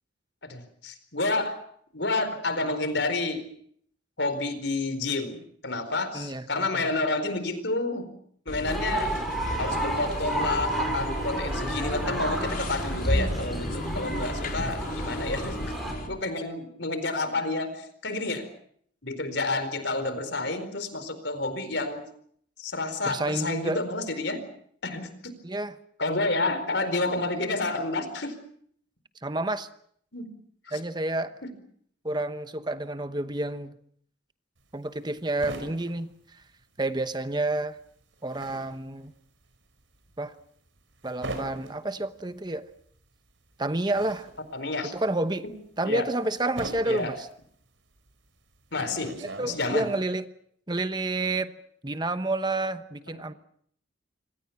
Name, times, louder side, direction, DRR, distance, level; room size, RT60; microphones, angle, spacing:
voice 1, 0.4-1.5 1.9-3.4 4.2-8.1 8.5-9.2 9.6-15.6 16.0-18.5 19.0-22.0 22.6-24.4 24.8-25.3 26.0-28.3 30.1-30.3 30.6-30.8 31.4-31.5 44.5-44.9 45.8-46.1 46.8-47.1 48.7-49.2 49.4-49.9 53.1-53.4, left 2 dB, 70° left, 11 dB, 4.5 m, -29 dB
voice 2, 6.1-6.9 23.0-23.8 25.4-25.8 29.2-29.7 30.7-31.3 32.0-33.7 34.7-36.1 36.8-37.8 38.2-39.1 40.2-40.3 41.0-42.6 43.6-44.3 44.9-45.5 45.8-47.2 49.2-50.2 50.7-51.5 51.8-53.3, right 2 dB, 25° right, 11 dB, 1.0 m, -29 dB
sound 1, 8.5-16.1, equal, 45° left, 4.5 m, -32 dB
sound 2, 8.7-15.9, right 1 dB, ahead, 5.9 m, -32 dB
sound 3, 34.6-37.1 37.4-50.0, right 2 dB, 85° right, 5.2 m, -42 dB
27.5 x 25.0 x 5.9 m, 0.64 s
head